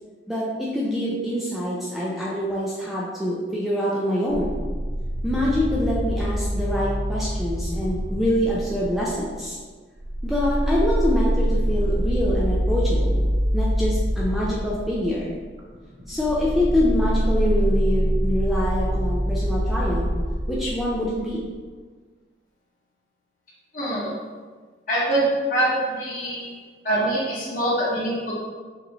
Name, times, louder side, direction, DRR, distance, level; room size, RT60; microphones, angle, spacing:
voice 1, 0.3-4.6 5.2-9.6 10.2-13.2 13.5-15.3 16.1-20.1 20.5-21.4, left 1 dB, ahead, -6 dB, 0.5 m, -25 dB
sound 1, 4.3-9.5 9.9-21.5, equal, 70° right, 0.7 m, -25 dB
voice 2, 23.7-24.1 24.9-26.5 26.8-28.3, right 1 dB, 45° left, -7 dB, 1.4 m, -24 dB
5.8 x 2.6 x 3.0 m, 1.5 s
head